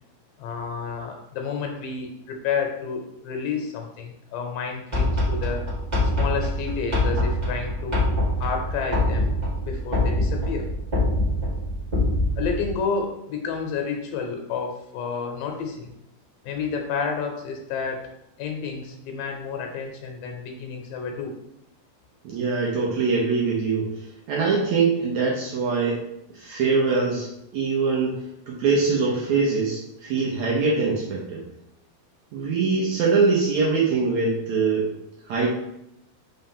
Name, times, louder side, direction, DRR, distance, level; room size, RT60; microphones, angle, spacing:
voice 1, 0.4-5.6 6.2-8.1 8.4-9.3 9.7-10.7 12.4-15.9 16.4-18.1 18.4-21.4, left 5 dB, 75° left, 3 dB, 2.3 m, -30 dB
sound 1, 4.9-12.7, left 1 dB, 40° right, 0.5 m, -24 dB
voice 2, 22.2-26.0 26.3-28.2 28.5-31.4 32.3-34.9 35.3-35.5, right 4 dB, 70° right, -3 dB, 1.8 m, -23 dB
5.4 x 3.3 x 5.3 m, 0.82 s
omnidirectional pair, 4.2 m